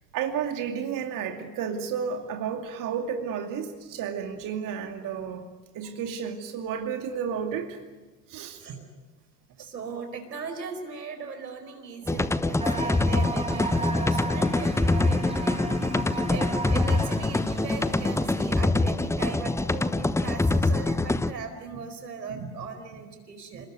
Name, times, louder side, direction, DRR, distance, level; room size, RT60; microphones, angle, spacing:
voice 1, 0.1-5.4 5.7-7.8 8.3-8.6 21.7-21.8 22.3-22.5 23.5-23.6, right 7 dB, 40° right, 4 dB, 2.6 m, -32 dB
voice 2, 9.6-15.7 16.3-23.7, right 5 dB, 75° right, 6 dB, 4.8 m, -39 dB
sound 1, 12.1-21.3, left 2 dB, 5° left, 1.0 m, -25 dB
sound 2, 12.6-18.6, right 2 dB, 10° right, 3.7 m, -36 dB
29.5 x 20.0 x 9.6 m, 1.3 s
figure-of-eight pair, 75°, 50 cm